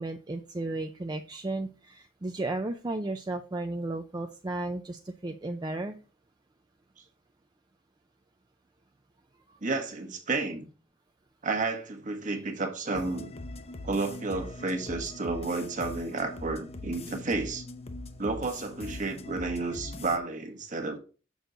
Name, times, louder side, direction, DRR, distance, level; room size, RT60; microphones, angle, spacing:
voice 1, 0.0-6.0 9.5-9.6, right 2 dB, 20° right, 0.5 m, -34 dB
voice 2, 9.6-10.7 11.4-13.3 13.8-17.7 18.2-21.0, right 3 dB, 40° right, 1.3 m, -31 dB
sound 1, 12.9-20.2, left 2 dB, 30° left, 0.6 m, -41 dB
6.8 x 6.3 x 3.8 m
head